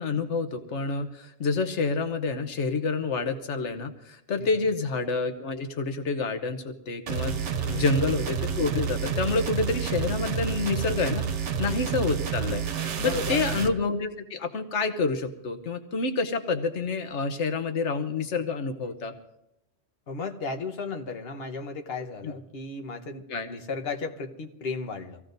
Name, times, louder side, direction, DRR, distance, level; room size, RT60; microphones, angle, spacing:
voice 1, 0.0-7.4 7.7-12.6 13.0-19.1 23.3-23.5, left 4 dB, 85° left, 7 dB, 1.3 m, -28 dB
voice 2, 4.4-4.7 7.6-7.9 11.8-12.1 13.0-13.5 20.1-25.2, left 4 dB, 60° left, 4 dB, 1.3 m, -35 dB
sound 1, 7.1-13.8, right 7 dB, 85° right, 1.2 m, -29 dB
25.5 x 16.0 x 2.6 m, 0.85 s
omnidirectional pair, 1.2 m